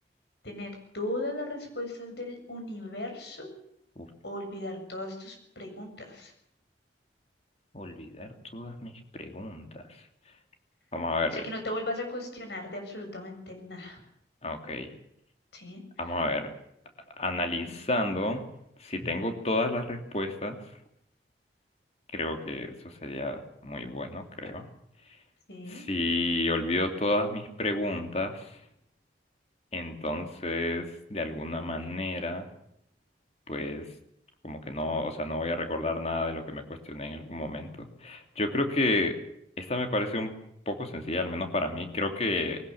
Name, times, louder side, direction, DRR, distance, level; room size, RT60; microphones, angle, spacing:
voice 1, 0.4-3.5 4.2-6.3 11.3-14.0 15.5-16.1 17.3-17.8 25.5-25.8, left 1 dB, 70° left, 4 dB, 7.1 m, -37 dB
voice 2, 7.7-9.8 10.9-11.4 14.4-14.9 16.0-16.5 17.2-18.4 18.8-20.6 22.1-24.7 25.7-28.4 29.7-32.4 33.5-33.8 34.4-39.1 39.6-40.3 40.7-42.6, left 2 dB, 35° left, 5 dB, 2.8 m, -31 dB
20.5 x 19.0 x 7.1 m, 0.74 s
head